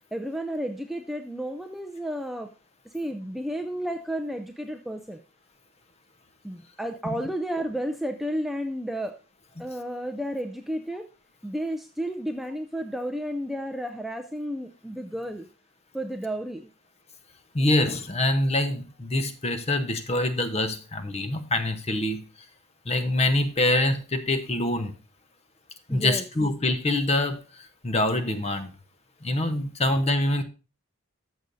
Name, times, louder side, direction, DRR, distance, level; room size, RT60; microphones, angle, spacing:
voice 1, 0.1-2.5 2.9-5.2 6.4-9.2 9.6-11.1 11.4-15.5 15.9-16.7 25.9-26.2, equal, ahead, 0.4 m, -32 dB
voice 2, 17.5-22.2 22.8-24.9 25.9-28.7 29.2-30.4, left 1 dB, 30° left, 0.8 m, -25 dB
13.5 x 6.3 x 2.6 m
head